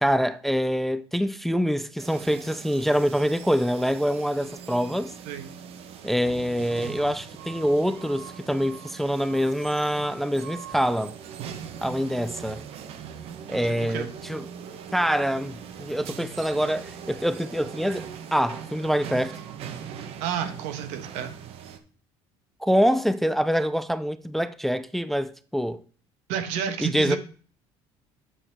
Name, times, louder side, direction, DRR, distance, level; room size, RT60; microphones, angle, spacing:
voice 1, 0.0-5.1 6.0-11.1 11.8-12.6 13.5-14.4 14.9-19.4 22.6-25.8 26.8-27.2, equal, ahead, 0.4 m, -25 dB
sound 1, 2.0-21.8, right 8 dB, 60° right, 1.0 m, -41 dB
voice 2, 13.6-14.1 20.2-21.3 26.3-27.2, right 8 dB, 85° right, 1.3 m, -30 dB
8.2 x 7.1 x 3.5 m
cardioid pair, 115°, 11 cm